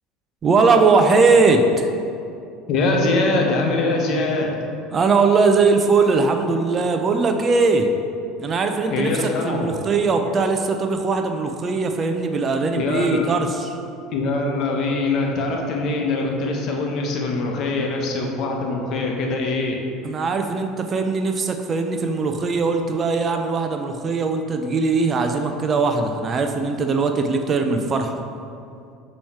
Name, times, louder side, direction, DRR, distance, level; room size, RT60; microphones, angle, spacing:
voice 1, 0.4-1.9 4.9-7.9 8.4-13.7 20.0-28.2, right 4 dB, 35° right, 5 dB, 0.5 m, -20 dB
voice 2, 2.7-4.5 8.9-9.7 12.7-13.3 14.1-19.8, left 3 dB, 50° left, 1 dB, 1.0 m, -23 dB
7.0 x 3.2 x 4.6 m, 2.6 s
hypercardioid pair, 70°, 0 cm